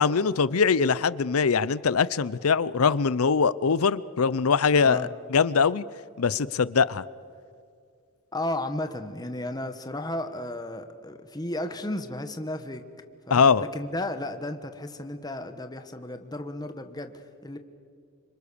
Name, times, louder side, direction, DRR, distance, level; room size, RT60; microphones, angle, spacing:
voice 1, 0.0-5.8 6.2-7.0 13.3-13.6, left 5 dB, 85° left, 0.6 m, -22 dB
voice 2, 8.3-12.8 13.3-17.6, left 1 dB, 20° left, 1.3 m, -34 dB
28.0 x 26.0 x 6.9 m
head